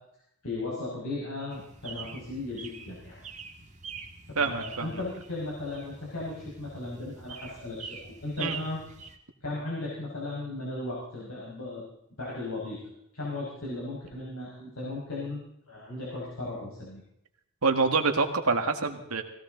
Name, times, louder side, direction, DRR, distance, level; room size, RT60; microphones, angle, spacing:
voice 1, 0.4-3.2 4.4-8.8 9.4-11.8 12.2-12.8 13.1-15.4 15.7-17.0, left 2 dB, 70° left, -5 dB, 5.7 m, -36 dB
sound 1, 1.5-9.2, right 5 dB, 35° right, 1.7 m, -45 dB
voice 2, 4.4-5.0 8.4-8.6 17.6-19.2, right 4 dB, 80° right, 5 dB, 2.0 m, -26 dB
19.5 x 17.5 x 4.0 m, 0.77 s
head